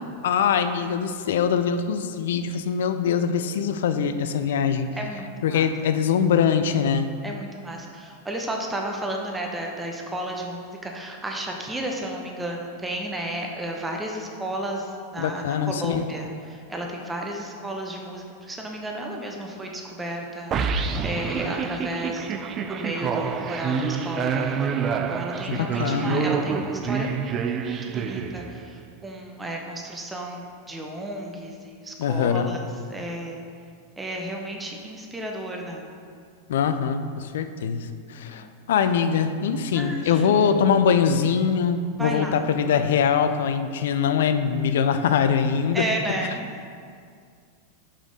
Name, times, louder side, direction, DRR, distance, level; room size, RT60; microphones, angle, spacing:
voice 1, 0.2-4.9 5.4-7.1 15.2-16.1 25.5-26.3 32.0-32.5 36.5-45.8, left 7 dB, 60° left, 9 dB, 0.4 m, -23 dB
voice 2, 5.0-5.7 7.2-20.5 21.0-24.7 25.1-32.6 32.9-33.4 34.0-35.9 38.3-38.5 39.7-40.5 42.0-42.4 45.7-46.4, right 1 dB, 10° right, 1 dB, 0.7 m, -33 dB
sound 1, 20.5-28.8, right 6 dB, 30° right, 0.4 m, -27 dB
5.7 x 4.9 x 5.0 m, 2.2 s
figure-of-eight pair, 90°, 0 cm